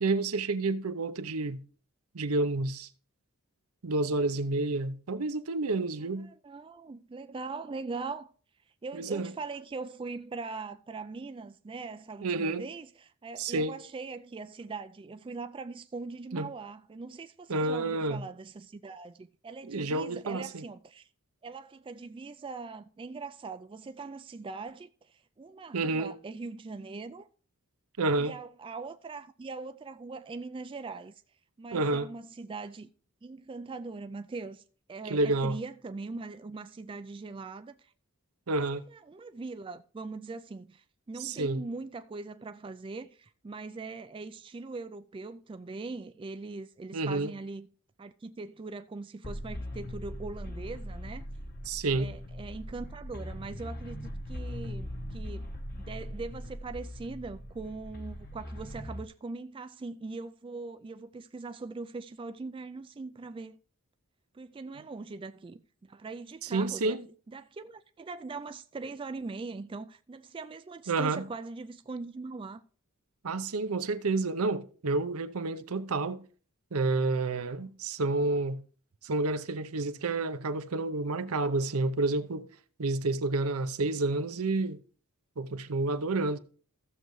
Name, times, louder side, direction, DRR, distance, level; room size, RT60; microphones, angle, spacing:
voice 1, 0.0-1.6 2.1-2.9 3.8-6.3 8.9-9.3 12.2-12.7 13.4-13.8 16.3-16.5 17.5-18.2 19.7-20.6 25.7-26.1 28.0-28.4 31.7-32.1 35.0-35.6 38.5-38.9 41.2-41.6 46.9-47.3 51.7-52.1 66.4-67.0 70.9-71.3 73.2-76.2 76.7-78.6 79.0-82.5 82.8-84.8 85.4-86.4, right 3 dB, 80° right, 0.7 m, -29 dB
voice 2, 6.0-8.3 8.8-21.1 21.4-27.3 28.2-31.2 31.6-32.9 33.2-34.6 34.9-37.9 38.9-47.7 48.0-51.3 52.0-55.5 55.8-63.6 64.3-72.6, right 3 dB, 25° right, 0.3 m, -41 dB
sound 1, 49.2-59.0, equal, 45° left, 1.0 m, -40 dB
15.0 x 6.6 x 3.1 m
head